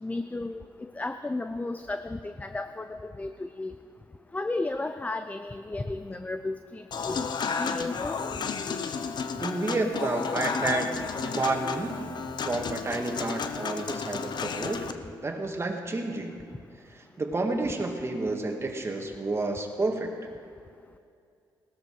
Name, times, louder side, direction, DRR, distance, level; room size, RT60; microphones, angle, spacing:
voice 1, 0.0-3.7 4.3-7.2 7.6-8.2, left 2 dB, 15° left, 9 dB, 0.6 m, -34 dB
Human voice / Acoustic guitar / Piano, 6.9-14.9, left 5 dB, 55° left, 0.9 m, -32 dB
voice 2, 9.4-10.9 11.2-12.0 12.4-14.9 15.2-16.4 16.9-20.1, right 2 dB, 30° right, 3 dB, 2.1 m, -30 dB
17.5 x 13.0 x 4.8 m, 2.4 s
cardioid pair, 70°, 9 cm